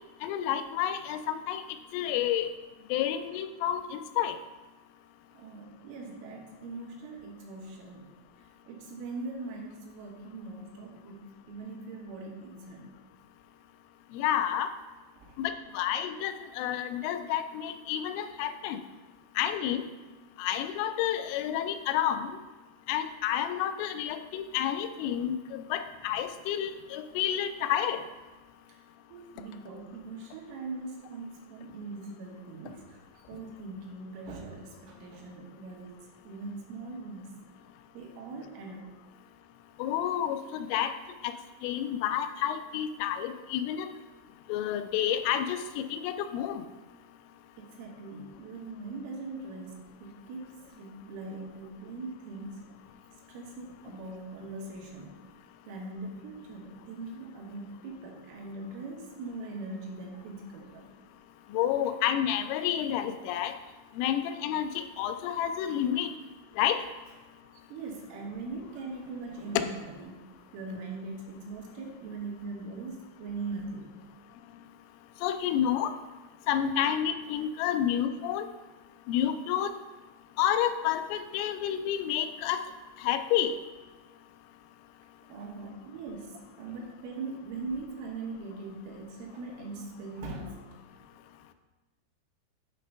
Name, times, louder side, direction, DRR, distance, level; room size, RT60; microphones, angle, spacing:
voice 1, 0.2-1.6 1.9-2.5 2.9-4.3 14.1-14.7 15.4-18.8 19.4-19.8 20.4-22.3 22.9-28.0 39.8-40.9 41.2-41.3 41.6-43.9 44.5-45.6 45.9-46.6 61.5-63.5 64.0-66.1 66.6-66.8 75.2-75.9 76.5-78.5 79.1-79.7 80.4-82.6 83.0-83.5, left 10 dB, 90° left, 9 dB, 3.1 m, -29 dB
voice 2, 5.3-8.1 8.7-12.9 15.2-15.4 29.1-33.0 33.3-36.0 36.3-37.4 37.9-38.8 47.6-52.7 53.3-55.2 55.7-60.9 67.7-70.1 70.5-74.0 85.3-90.6, right 3 dB, 85° right, -1 dB, 3.7 m, -41 dB
8.3 x 3.3 x 5.4 m, 1.2 s
omnidirectional pair, 5.5 m